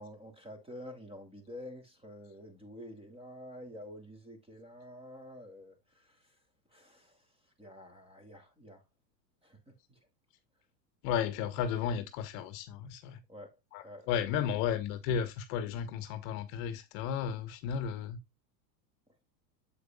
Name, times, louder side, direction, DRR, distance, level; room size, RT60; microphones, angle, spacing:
voice 1, 0.0-6.4 6.7-7.3 7.6-8.8 9.4-10.0 13.3-13.6 13.8-14.6, left 1 dB, 10° right, 2.8 m, -49 dB
voice 2, 11.0-13.2 13.7-18.2, left 8 dB, 55° left, 1.2 m, -34 dB
8.2 x 7.8 x 2.3 m
hypercardioid pair, 120°, 50 cm